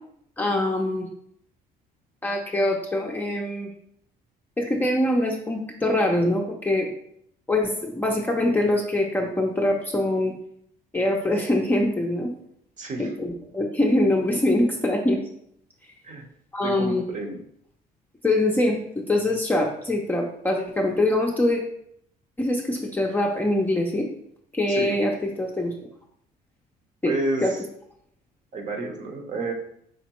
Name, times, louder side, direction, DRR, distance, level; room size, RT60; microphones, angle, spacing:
voice 1, 0.4-1.1 2.2-3.7 4.6-6.9 7.5-10.3 10.9-12.3 13.0-15.2 16.5-17.0 18.2-21.6 22.4-24.1 24.5-25.7 27.0-27.1 27.4-27.5, left 1 dB, 10° left, -1 dB, 0.6 m, -23 dB
voice 2, 12.8-13.1 16.0-16.2 16.6-17.4 24.7-25.0 27.0-27.6 28.5-29.5, right 2 dB, 45° right, 2 dB, 1.0 m, -30 dB
5.0 x 3.3 x 3.0 m, 0.69 s
cardioid pair, 110°, 17 cm